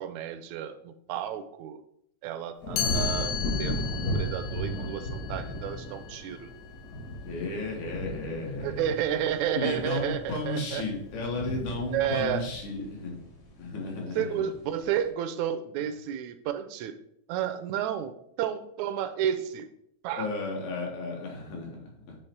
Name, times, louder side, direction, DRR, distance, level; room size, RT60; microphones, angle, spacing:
voice 1, 0.0-1.8 2.2-6.5 8.6-10.8 11.9-12.4 14.2-17.0 17.3-19.7 20.0-20.3, right 9 dB, 80° right, 10 dB, 1.8 m, -31 dB
sound 1, 2.6-13.9 14.3-14.8, equal, 55° left, 1.2 m, -35 dB
Chime, 2.8-8.6, left 9 dB, 70° left, 1.8 m, -37 dB
voice 2, 7.3-9.0 9.5-13.2 13.6-14.5 20.2-21.8 22.1-22.2, left 3 dB, 85° left, -1 dB, 2.9 m, -34 dB
8.4 x 3.1 x 4.6 m, 0.72 s
omnidirectional pair, 3.3 m